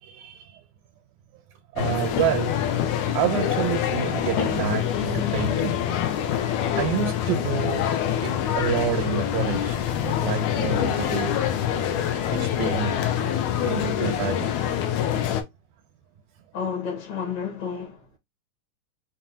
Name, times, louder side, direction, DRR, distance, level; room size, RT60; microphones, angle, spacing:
voice 1, 0.0-0.6 1.7-2.6 3.1-5.9 6.8-9.8 10.0-11.4 12.3-13.0 13.6-14.5, right 11 dB, 90° right, 2.0 m, -29 dB
sound 1, 1.8-15.4, left 10 dB, 85° left, 2.1 m, -25 dB
voice 2, 16.5-18.2, left 7 dB, 70° left, 2.3 m, -31 dB
5.7 x 2.2 x 2.6 m
omnidirectional pair, 3.4 m